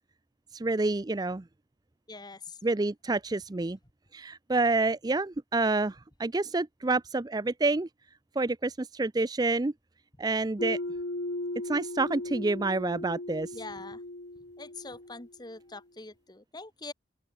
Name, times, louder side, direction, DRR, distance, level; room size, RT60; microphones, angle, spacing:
voice 1, 0.5-1.4 2.6-3.8 4.1-7.9 8.4-9.7 10.2-10.8 11.7-13.5, right 3 dB, 20° right, 0.5 m, -28 dB
voice 2, 2.1-2.6 13.5-14.0 14.6-16.9, left 3 dB, 25° left, 1.7 m, -43 dB
sound 1, 10.6-15.3, left 1 dB, 70° left, 1.9 m, -37 dB
open air
head